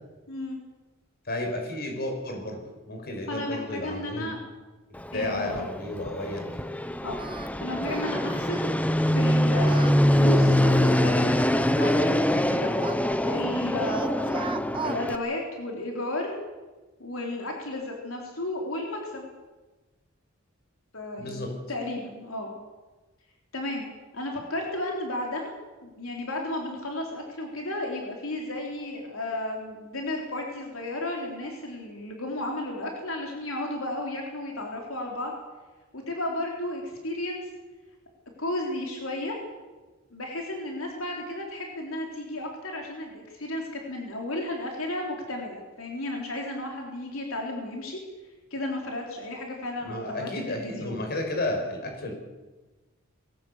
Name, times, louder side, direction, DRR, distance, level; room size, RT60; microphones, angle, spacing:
voice 1, 0.3-0.6 3.3-4.4 5.1-5.6 7.0-7.2 7.6-8.7 9.1-11.3 11.6-12.7 13.2-14.4 14.8-16.4 17.0-19.3 20.9-22.5 23.5-23.8 24.1-25.5 25.8-35.3 35.9-37.4 38.4-39.4 40.1-48.0 48.5-51.1, left 1 dB, 80° left, 1 dB, 3.9 m, -33 dB
voice 2, 1.3-4.3 5.1-6.7 21.2-21.5 49.8-52.1, left 1 dB, 50° left, 3 dB, 5.6 m, -32 dB
Fixed-wing aircraft airplane, 4.9-15.2, equal, 5° left, 0.8 m, -24 dB
Singing, 7.2-7.5 7.8-8.2 8.5-8.8 9.5-11.1 11.8-13.5 13.8-15.0, right 4 dB, 25° right, 0.9 m, -38 dB
21.0 x 17.5 x 8.2 m, 1.2 s
head